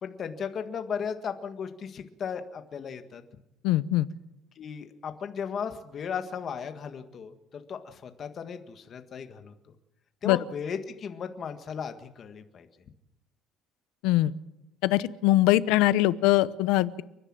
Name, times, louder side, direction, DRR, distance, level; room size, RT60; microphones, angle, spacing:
voice 1, 0.0-3.2 4.5-9.7 10.2-12.7, left 7 dB, 35° left, 7 dB, 1.6 m, -36 dB
voice 2, 3.6-4.1 10.2-10.4 14.0-14.3 14.8-17.0, left 16 dB, 85° left, 16 dB, 0.8 m, -22 dB
30.0 x 10.0 x 8.8 m, 0.92 s
cardioid pair, 165°, 0 cm